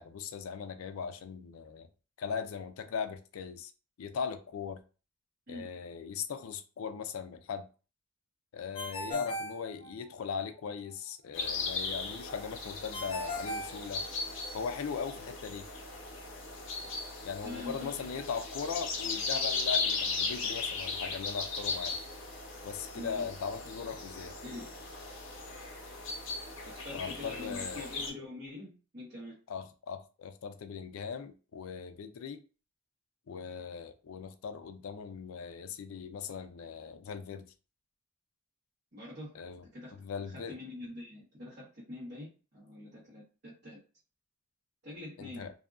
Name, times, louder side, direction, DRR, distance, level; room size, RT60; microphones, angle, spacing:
voice 1, 0.0-1.9 2.2-3.7 4.0-4.8 5.5-7.6 8.5-14.0 14.5-15.7 17.2-22.0 22.6-24.3 26.9-27.9 29.5-32.4 33.3-37.5 39.3-39.6 39.9-40.6 45.2-45.5, left 6 dB, 85° left, 0.4 m, -39 dB
Ringtone, 8.7-10.4 12.9-14.6, equal, 25° left, 0.5 m, -39 dB
sound 1, 11.3-28.1, left 4 dB, 60° left, 0.8 m, -37 dB
voice 2, 17.4-18.0 22.9-23.3 24.0-24.1 24.4-24.8 26.7-29.4 38.9-39.4 39.7-40.0 40.3-43.8 44.8-45.5, left 2 dB, 50° right, 1.1 m, -45 dB
2.7 x 2.4 x 2.3 m
head